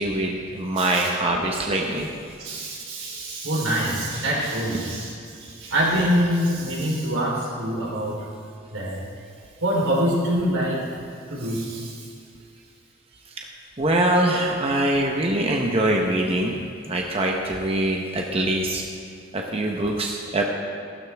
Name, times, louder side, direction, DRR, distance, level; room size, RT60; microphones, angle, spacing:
voice 1, 0.0-2.1 13.8-16.6 16.9-18.8 19.3-20.4, right 1 dB, 30° right, 0 dB, 0.9 m, -23 dB
voice 2, 2.4-8.2 8.7-9.0 9.6-10.8 11.3-12.0, equal, 90° right, -4 dB, 3.6 m, -25 dB
15.0 x 12.5 x 3.5 m, 2.3 s
head